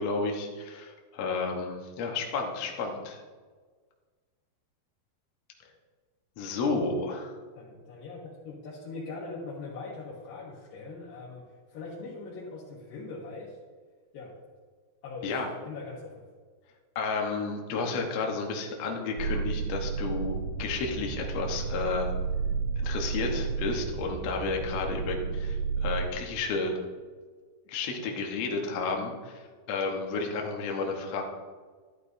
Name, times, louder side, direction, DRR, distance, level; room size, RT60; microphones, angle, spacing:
voice 1, 0.0-3.2 6.4-7.3 15.2-15.5 16.9-22.1 22.8-26.8 27.7-31.2, left 4 dB, 90° left, 1 dB, 1.4 m, -32 dB
voice 2, 7.5-13.6 14.1-14.3 15.0-15.3 15.6-16.2, left 3 dB, 65° left, -8 dB, 3.1 m, -41 dB
sound 1, 19.2-26.1, right 5 dB, 80° right, 2.8 m, -32 dB
12.0 x 11.0 x 2.7 m, 1.5 s
omnidirectional pair, 5.0 m